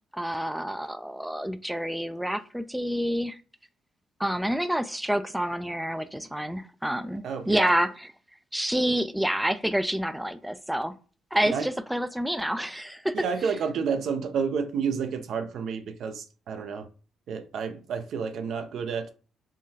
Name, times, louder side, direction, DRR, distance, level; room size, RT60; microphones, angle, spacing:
voice 1, 0.1-3.4 4.2-8.1 8.5-11.0 11.3-13.2, equal, 5° right, 0.3 m, -28 dB
voice 2, 7.2-7.7 11.4-11.7 13.1-16.9 17.3-19.1, right 6 dB, 70° right, 0.5 m, -30 dB
3.7 x 2.3 x 2.7 m
supercardioid pair, 55°, 0 cm